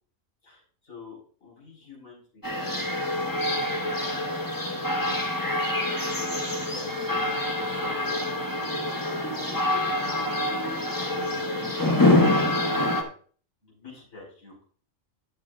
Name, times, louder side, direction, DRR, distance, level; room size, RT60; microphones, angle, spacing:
voice 1, 0.4-3.0 3.3-5.3 5.8-8.2 9.8-10.4 10.7-11.7 13.6-14.6, left 3 dB, 90° left, -2 dB, 4.8 m, -47 dB
sound 1, 2.4-13.0, left 1 dB, 15° left, 1.1 m, -26 dB
10.5 x 6.8 x 3.7 m, 0.43 s
omnidirectional pair, 1.4 m